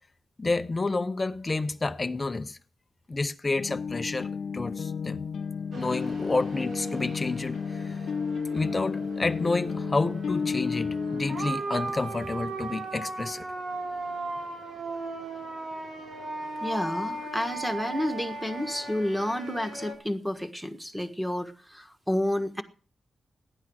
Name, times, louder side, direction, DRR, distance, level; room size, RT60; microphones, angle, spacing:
voice 1, 0.4-2.6 3.1-5.2 5.7-8.1 8.5-13.5, left 3 dB, 25° left, 0.7 m, -30 dB
sound 1, 3.6-11.5, left 6 dB, 80° left, 0.8 m, -32 dB
sound 2, 5.7-19.9, right 3 dB, 90° right, 5.8 m, -37 dB
voice 2, 16.6-22.6, left 1 dB, 5° right, 1.4 m, -30 dB
16.0 x 11.0 x 6.3 m
wide cardioid pair, 130°, 0 cm